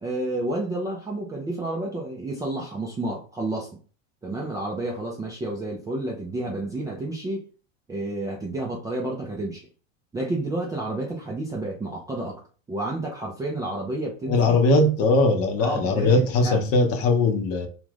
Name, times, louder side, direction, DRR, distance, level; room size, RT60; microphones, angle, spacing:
voice 1, 0.0-3.7 4.2-7.5 7.9-9.6 10.1-12.4 12.7-14.6 15.6-16.6, right 2 dB, 10° right, 0.4 m, -30 dB
voice 2, 14.3-17.7, left 2 dB, 35° left, 0.7 m, -20 dB
2.5 x 2.5 x 3.3 m
figure-of-eight pair, 90°, 41 cm